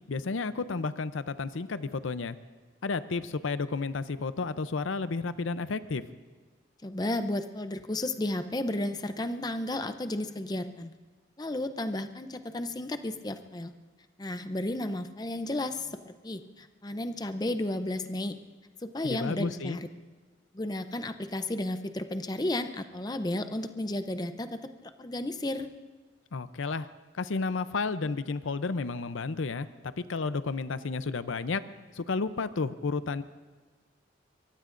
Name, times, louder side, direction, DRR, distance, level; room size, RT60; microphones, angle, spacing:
voice 1, 0.1-2.4 2.8-6.0 19.0-19.8 26.3-26.9 27.2-29.7 30.0-31.6 32.0-33.2, left 4 dB, 90° left, 13 dB, 0.6 m, -32 dB
voice 2, 6.8-10.9 11.4-13.7 14.2-18.4 18.8-19.9 20.5-25.7, left 1 dB, 20° left, 9 dB, 0.6 m, -33 dB
23.5 x 23.5 x 2.6 m, 1.3 s
head